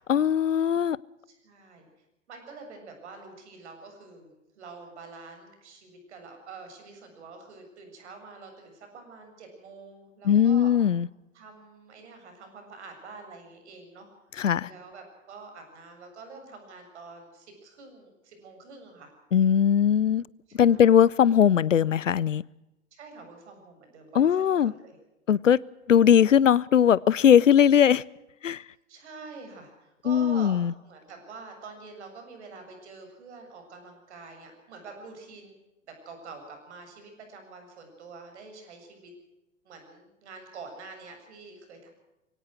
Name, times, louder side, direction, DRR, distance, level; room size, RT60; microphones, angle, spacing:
voice 1, 0.1-1.0 10.2-11.1 14.4-14.7 19.3-20.2 20.5-22.4 24.1-24.7 25.3-25.6 25.9-28.0 28.4-28.6 30.1-30.7, left 9 dB, 80° left, 0.6 m, -20 dB
voice 2, 1.3-1.9 2.3-10.8 11.3-14.1 14.6-19.1 20.5-21.0 22.9-25.0 28.9-35.5 35.9-39.1 39.6-41.9, right 4 dB, 60° right, 7.3 m, -46 dB
24.0 x 17.5 x 6.3 m
figure-of-eight pair, 95°, 38 cm